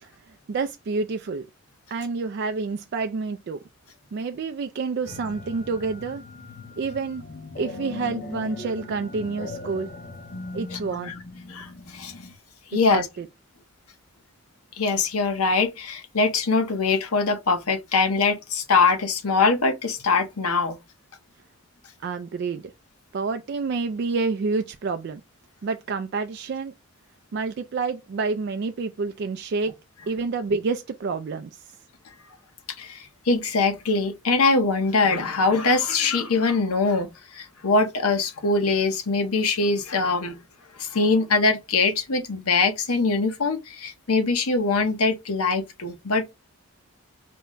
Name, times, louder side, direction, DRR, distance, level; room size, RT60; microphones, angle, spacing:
voice 1, 0.0-1.5 1.9-3.6 4.1-6.2 6.8-7.2 7.6-9.9 10.5-11.1 12.9-13.3 22.0-22.6 23.1-25.2 25.6-26.7 27.3-29.7 30.1-31.8, right 4 dB, 50° right, 0.3 m, -28 dB
sound 1, 5.1-12.4, left 3 dB, 45° left, 0.7 m, -39 dB
voice 2, 12.7-13.1 14.8-20.8 32.8-37.1 37.3-40.4 40.8-46.3, left 4 dB, 85° left, 0.9 m, -22 dB
4.4 x 2.1 x 3.7 m
head